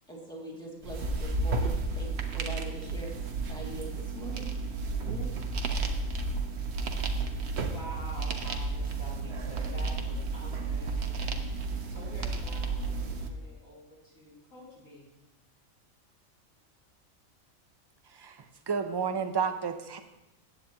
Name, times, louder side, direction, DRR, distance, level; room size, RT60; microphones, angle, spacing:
voice 1, 0.1-3.2 3.5-4.5 5.0-5.4, right 1 dB, 5° left, -4 dB, 2.4 m, -42 dB
sound 1, 0.8-13.3, right 3 dB, 55° right, 1.1 m, -32 dB
voice 2, 7.6-15.1, equal, 70° left, -7 dB, 3.8 m, -48 dB
voice 3, 18.1-20.0, right 6 dB, 30° right, 7 dB, 0.4 m, -31 dB
15.0 x 9.0 x 3.0 m, 0.95 s
omnidirectional pair, 1.4 m